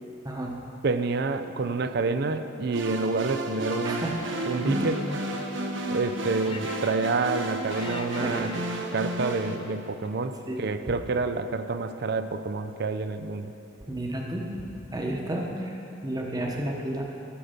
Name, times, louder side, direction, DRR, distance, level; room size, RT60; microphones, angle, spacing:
voice 1, 0.2-0.6 3.8-4.3 4.6-5.2 8.2-8.4 10.5-10.6 13.8-14.4 14.9-17.0, right 1 dB, 20° right, 0 dB, 1.0 m, -31 dB
voice 2, 0.8-4.2 4.4-5.0 5.9-8.6 8.9-13.5, right 3 dB, 55° right, 10 dB, 0.5 m, -28 dB
sound 1, 2.7-9.6, right 1 dB, 70° right, 0.9 m, -33 dB
Laughter, 3.5-4.5 4.8-6.1 6.4-7.4 7.7-10.3, left 4 dB, 30° left, 0.5 m, -46 dB
13.0 x 6.7 x 5.1 m, 2.8 s
head